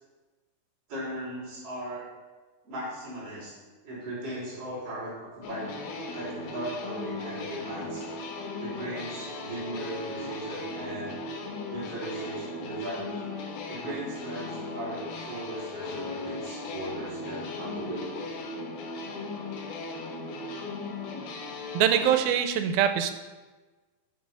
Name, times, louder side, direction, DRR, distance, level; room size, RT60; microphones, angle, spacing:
voice 1, 0.9-2.1 2.6-3.5 3.8-5.7 6.1-8.1 8.6-11.2 11.7-13.3 13.7-18.3, right 1 dB, 40° right, -7 dB, 4.2 m, -37 dB
sound 1, 5.4-22.2, left 3 dB, 90° left, 3.0 m, -37 dB
voice 2, 21.7-23.1, right 9 dB, 90° right, 8 dB, 2.5 m, -23 dB
8.7 x 6.1 x 5.6 m, 1.3 s
omnidirectional pair, 4.2 m